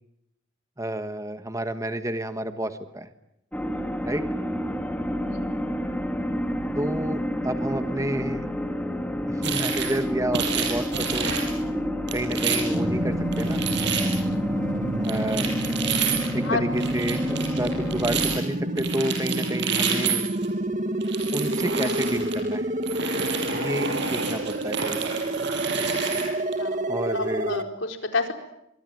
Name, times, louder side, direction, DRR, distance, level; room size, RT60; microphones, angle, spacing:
voice 1, 0.8-3.1 4.1-4.2 6.8-8.4 9.3-11.3 12.1-13.6 15.0-15.5 16.3-20.2 21.3-22.8 23.5-25.2 26.9-27.5, right 1 dB, 15° right, 9 dB, 1.4 m, -30 dB
sound 1, 3.5-18.4, equal, 5° left, 2.4 m, -29 dB
sound 2, 9.4-10.0 10.3-11.6 12.1-12.8 13.3-14.2 15.0-16.4 16.7-18.4 18.8-20.5 21.0-22.4 22.8-26.5, right 6 dB, 60° right, 6.7 m, -29 dB
sound 3, 12.7-27.6, right 1 dB, 40° right, 1.9 m, -29 dB
voice 2, 27.1-28.3, left 3 dB, 65° left, 5 dB, 4.4 m, -28 dB
25.5 x 24.0 x 9.3 m, 0.83 s
head